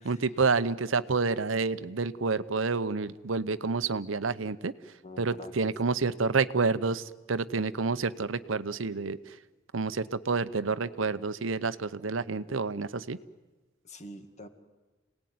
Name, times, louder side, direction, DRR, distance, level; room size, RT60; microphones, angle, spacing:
voice 1, 0.0-4.7 5.2-9.2 9.7-13.2, right 4 dB, 80° right, 14 dB, 0.8 m, -29 dB
voice 2, 5.0-6.0 13.8-14.5, left 1 dB, 35° left, 8 dB, 1.9 m, -46 dB
27.0 x 18.5 x 9.5 m, 1.2 s
head